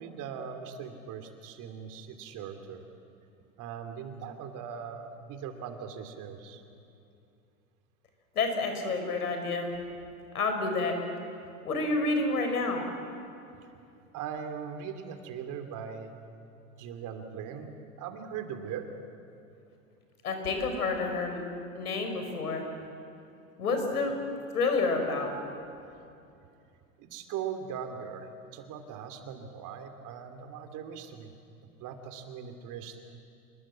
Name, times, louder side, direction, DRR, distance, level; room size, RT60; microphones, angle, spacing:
voice 1, 0.0-2.8 3.6-6.6 13.6-13.7 14.1-16.1 16.8-18.9 27.0-31.3 31.8-33.0, right 7 dB, 45° right, 6 dB, 3.0 m, -40 dB
voice 2, 8.3-9.7 10.3-11.0 11.6-12.9 20.2-21.4 21.7-22.6 23.6-24.1 24.5-25.3, left 3 dB, 85° left, 5 dB, 4.9 m, -29 dB
26.5 x 21.0 x 7.6 m, 2.6 s
hypercardioid pair, 100°, 44 cm